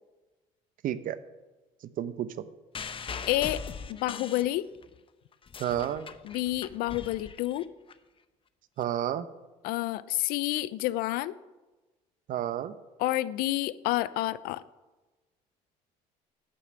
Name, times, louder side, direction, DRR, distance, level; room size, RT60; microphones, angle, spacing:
voice 1, 0.8-1.2 2.0-2.3 5.6-6.0 8.8-9.2 12.3-12.7, right 11 dB, 65° right, 14 dB, 0.8 m, -30 dB
sound 1, 2.7-5.0 5.3-7.9 8.8-8.9, left 6 dB, 35° left, 0.8 m, -41 dB
voice 2, 3.3-3.6 3.9-4.6 6.2-7.7 9.6-11.3 13.0-14.6, left 16 dB, 80° left, 18 dB, 0.5 m, -29 dB
11.5 x 6.6 x 7.7 m, 1.2 s
supercardioid pair, 85°, 15 cm